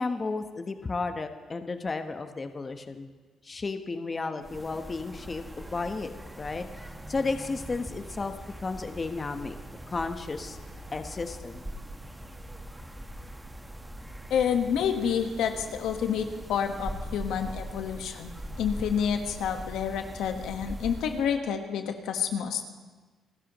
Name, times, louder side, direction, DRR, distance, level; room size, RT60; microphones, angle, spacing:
voice 1, 0.0-3.1 3.4-6.1 6.4-6.6 7.1-8.3 8.6-9.5 9.9-10.6 10.9-11.7, left 3 dB, 30° left, 7 dB, 1.0 m, -33 dB
sound 1, 4.4-21.4, right 1 dB, 10° right, 1.3 m, -42 dB
voice 2, 14.3-18.3 18.6-22.6, left 7 dB, 85° left, 5 dB, 1.3 m, -29 dB
27.0 x 14.0 x 3.0 m, 1.3 s
cardioid pair, 90°, 0 cm